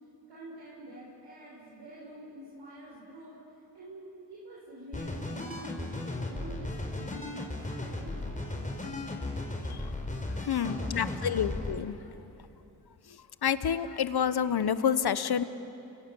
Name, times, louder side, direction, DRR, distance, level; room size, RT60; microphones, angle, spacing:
voice 1, 0.3-3.4 3.7-9.2 10.3-11.4, right 1 dB, 60° right, -6 dB, 7.0 m, -48 dB
sound 1, 4.9-11.8, left 2 dB, 15° left, 5.0 m, -36 dB
voice 2, 10.5-11.9 13.4-15.4, left 8 dB, 55° left, 13 dB, 1.3 m, -28 dB
30.0 x 24.5 x 7.2 m, 3.0 s
supercardioid pair, 50°, 46 cm